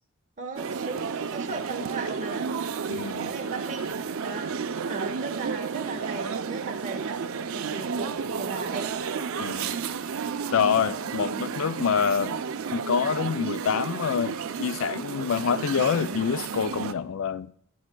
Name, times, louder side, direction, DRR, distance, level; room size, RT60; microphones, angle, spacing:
voice 1, 0.4-2.5 3.0-3.8 4.2-8.9 11.0-11.9, right 3 dB, 35° right, 1.2 m, -38 dB
sound 1, 0.6-16.9, right 6 dB, 70° right, 0.5 m, -32 dB
voice 2, 2.9-3.3 9.4-9.8 10.5-12.4 12.7-17.5, left 6 dB, 70° left, 0.4 m, -26 dB
20.0 x 7.3 x 2.3 m
head